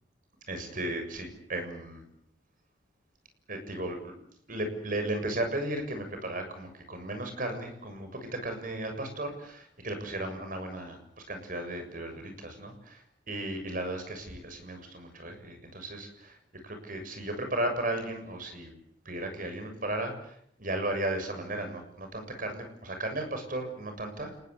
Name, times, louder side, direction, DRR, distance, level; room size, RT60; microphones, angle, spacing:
voice 1, 0.5-2.0 3.5-4.1 4.5-11.0 11.3-13.0 13.3-16.3 16.6-18.7 19.1-20.1 20.6-24.3, right 1 dB, 50° right, 6 dB, 7.1 m, -35 dB
29.5 x 20.0 x 8.2 m, 0.68 s
head